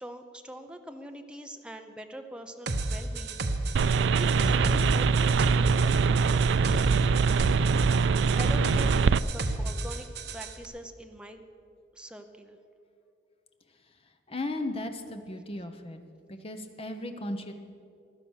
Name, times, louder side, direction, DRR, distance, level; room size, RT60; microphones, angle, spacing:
voice 1, 0.0-3.4 4.1-6.4 8.3-10.1 10.3-11.4 11.9-12.6, right 1 dB, 5° right, 5 dB, 0.8 m, -43 dB
sound 1, 2.7-10.5, right 2 dB, 65° right, 1.0 m, -32 dB
sound 2, 3.8-9.2, right 5 dB, 80° right, 0.4 m, -23 dB
voice 2, 14.3-16.0 16.3-17.5, left 1 dB, 30° left, 6 dB, 1.1 m, -36 dB
16.0 x 11.5 x 6.4 m, 2.5 s
head